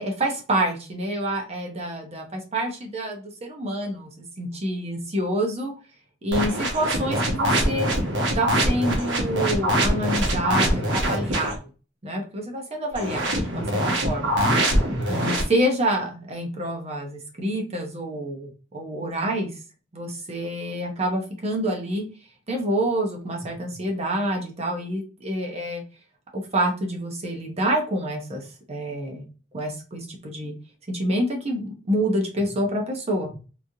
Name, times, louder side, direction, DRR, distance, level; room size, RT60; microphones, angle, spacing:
voice 1, 0.0-5.7 6.2-7.9 8.3-11.6 12.0-14.3 15.1-19.6 19.9-22.0 22.5-25.8 26.3-29.3 29.5-30.5 30.9-33.3, right 1 dB, 35° right, 2 dB, 0.7 m, -27 dB
sound 1, 6.3-11.6 12.9-15.4, right 1 dB, 65° right, 0.9 m, -23 dB
3.0 x 2.4 x 2.7 m, 0.34 s
head